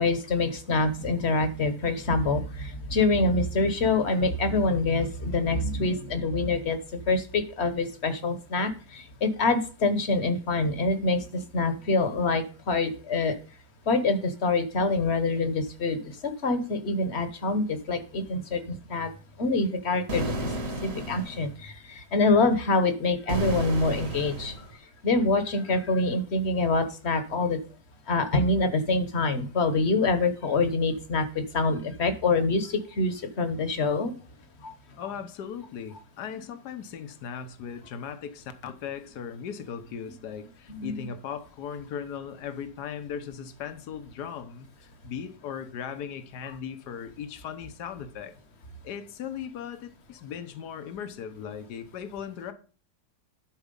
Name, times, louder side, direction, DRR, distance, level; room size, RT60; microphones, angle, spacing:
voice 1, 0.0-6.8 7.1-11.2 11.5-13.3 13.9-19.1 19.4-20.5 20.8-24.5 25.0-27.6 28.1-34.1 34.6-34.7 40.7-41.0, left 3 dB, 45° left, 1.4 m, -25 dB
sound 1, 20.1-21.5 23.3-24.7, right 2 dB, 50° right, 2.1 m, -32 dB
voice 2, 35.0-48.3 48.8-52.5, left 7 dB, 70° left, 1.5 m, -38 dB
12.0 x 4.6 x 5.4 m
omnidirectional pair, 1.8 m